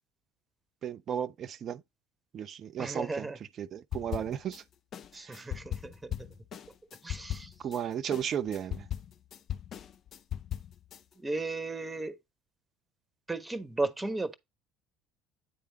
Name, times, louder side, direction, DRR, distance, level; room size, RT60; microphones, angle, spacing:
voice 1, 0.8-1.8 2.3-3.3 3.6-4.6 5.1-5.4 7.6-8.9, right 9 dB, 45° right, 0.6 m, -34 dB
voice 2, 2.8-3.4 5.1-6.3 7.0-7.5 11.2-12.2 13.3-14.3, right 2 dB, 15° right, 1.1 m, -35 dB
sound 1, 3.9-4.6 4.9-7.8 8.1-11.0, left 11 dB, 50° left, 0.6 m, -38 dB
9.3 x 3.5 x 4.1 m
hypercardioid pair, 60°, 0 cm